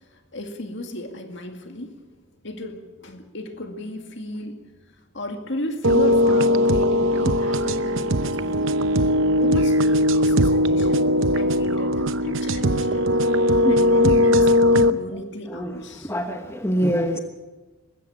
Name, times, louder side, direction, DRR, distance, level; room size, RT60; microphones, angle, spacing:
voice 1, 0.1-2.0 2.4-8.7 9.3-13.1 13.7-16.1, left 1 dB, 55° left, 5 dB, 2.2 m, -34 dB
sound 1, 5.8-14.9, left 1 dB, 60° right, 0.8 m, -19 dB
voice 2, 15.5-17.2, equal, 10° left, 5 dB, 1.2 m, -25 dB
20.5 x 16.0 x 8.8 m, 1.2 s
head